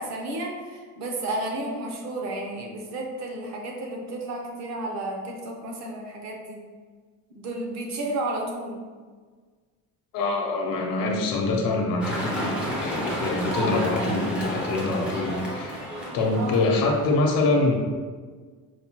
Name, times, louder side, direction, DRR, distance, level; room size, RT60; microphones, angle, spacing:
voice 1, 0.0-6.6 7.3-8.8 16.3-16.6, right 2 dB, 50° right, 0 dB, 0.6 m, -32 dB
voice 2, 10.1-15.8 16.1-17.8, left 2 dB, 70° left, 0 dB, 0.7 m, -25 dB
sound 1, 12.0-17.1, equal, 5° right, 0.4 m, -31 dB
4.8 x 2.1 x 2.8 m, 1.5 s
cardioid pair, 175°, 35 cm